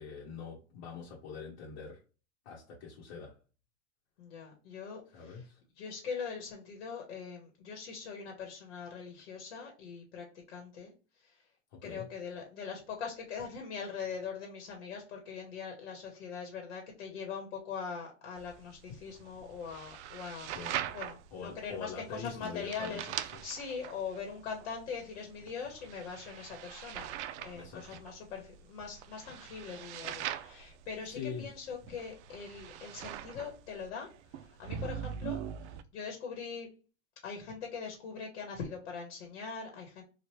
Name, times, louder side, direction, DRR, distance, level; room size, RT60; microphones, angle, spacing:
voice 1, 0.0-2.0 2.4-3.4 5.1-5.6 11.7-12.1 20.5-20.9 21.3-23.0 23.3-23.4 27.5-28.0 31.1-31.5 31.8-32.0, left 6 dB, 65° left, 1.0 m, -44 dB
voice 2, 4.2-5.4 5.8-10.9 11.2-11.4 11.8-20.5 20.9-27.1 27.4-35.4 35.9-36.7 37.2-40.0, left 6 dB, 80° left, 1.1 m, -42 dB
sound 1, 18.4-35.8, right 10 dB, 75° right, 0.5 m, -43 dB
3.0 x 2.4 x 3.0 m
supercardioid pair, 125°, 35 cm